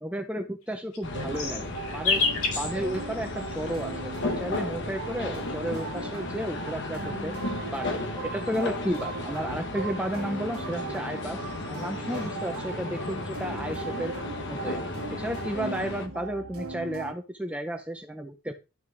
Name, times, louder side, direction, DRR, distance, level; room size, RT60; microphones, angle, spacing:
voice 1, 0.0-2.2 2.5-7.3 7.7-11.4 11.7-14.1 14.5-18.5, right 1 dB, 5° right, 5 dB, 0.7 m, -33 dB
sound 1, 0.6-4.1 5.0-6.3 7.2-9.1 10.5-12.6 13.0-13.5 13.8-14.9 15.2-15.9, left 4 dB, 85° left, 3.2 m, -34 dB
sound 2, 1.0-16.1, left 2 dB, 55° left, 1.4 m, -35 dB
sound 3, 1.1-17.1, right 4 dB, 85° right, 1.2 m, -39 dB
12.0 x 6.1 x 3.9 m, 0.29 s
head